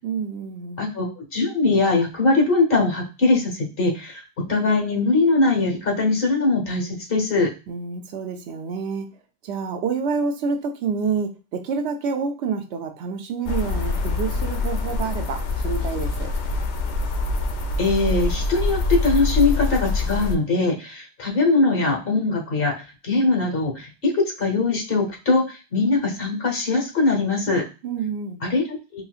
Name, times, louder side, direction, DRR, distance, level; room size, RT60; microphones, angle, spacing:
voice 1, 0.0-0.8 7.7-9.1 9.4-16.3 27.8-28.4, right 5 dB, 80° right, 6 dB, 0.9 m, -28 dB
voice 2, 0.8-4.2 4.5-7.5 17.8-22.7 23.0-27.6 28.4-29.0, left 3 dB, 55° left, 1 dB, 1.2 m, -21 dB
sound 1, 13.5-20.4, left 3 dB, 85° left, 0.9 m, -25 dB
3.9 x 2.4 x 2.4 m, 0.31 s
omnidirectional pair, 1.1 m